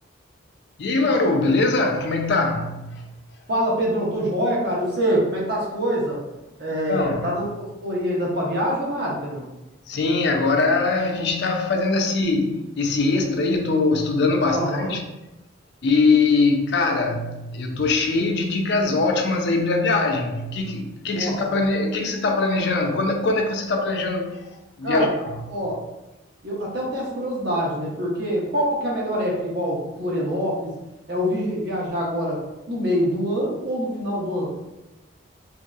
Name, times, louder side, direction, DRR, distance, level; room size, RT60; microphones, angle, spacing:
voice 1, 0.8-3.1 6.9-7.3 9.9-15.0 15.8-24.4 24.8-25.4, left 3 dB, 55° left, 0.4 m, -22 dB
voice 2, 3.5-6.2 6.6-7.5 7.8-9.5 14.5-14.9 21.1-21.4 24.8-25.1 25.5-25.8 26.4-30.7 31.1-32.4 32.7-34.5, equal, 55° right, 0.8 m, -25 dB
3.0 x 2.6 x 2.3 m
head